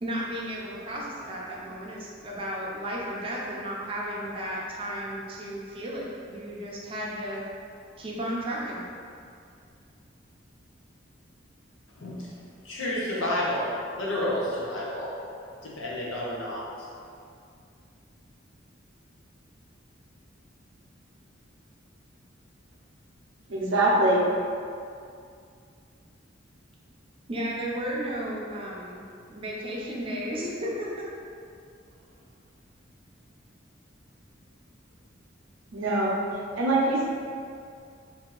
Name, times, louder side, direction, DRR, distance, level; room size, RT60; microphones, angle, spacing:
voice 1, 0.0-7.4 8.0-8.9 27.3-29.0 29.3-31.0, equal, 30° right, -4 dB, 0.6 m, -34 dB
voice 2, 12.0-12.3 12.6-15.1 15.6-16.6, left 1 dB, 80° left, -5 dB, 0.8 m, -30 dB
voice 3, 23.5-24.2 35.7-36.2 36.6-37.1, right 1 dB, 75° right, -3 dB, 0.6 m, -23 dB
2.8 x 2.7 x 3.8 m, 2.4 s
head